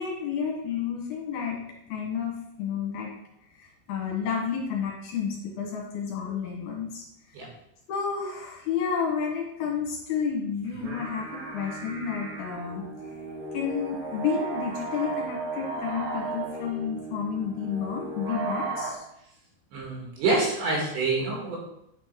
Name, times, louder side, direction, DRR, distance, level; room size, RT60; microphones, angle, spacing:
voice 1, 0.0-1.6 1.9-3.1 3.5-7.0 7.9-12.8 13.5-19.0, left 6 dB, 65° left, -2 dB, 3.5 m, -31 dB
sound 1, 10.6-18.9, right 3 dB, 55° right, 4.7 m, -35 dB
voice 2, 19.7-21.6, right 3 dB, 80° right, -2 dB, 4.4 m, -26 dB
9.4 x 4.4 x 4.9 m, 0.79 s
omnidirectional pair, 5.0 m